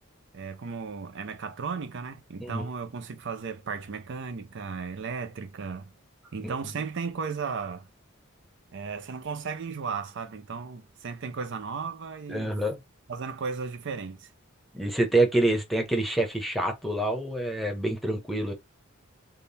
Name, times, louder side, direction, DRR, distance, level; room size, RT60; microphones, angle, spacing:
voice 1, 0.3-5.9 6.3-7.9 8.7-12.5 13.1-14.3, right 5 dB, 60° right, 0.5 m, -35 dB
voice 2, 12.3-12.8 14.7-18.5, right 2 dB, ahead, 0.9 m, -26 dB
3.7 x 2.2 x 4.0 m
head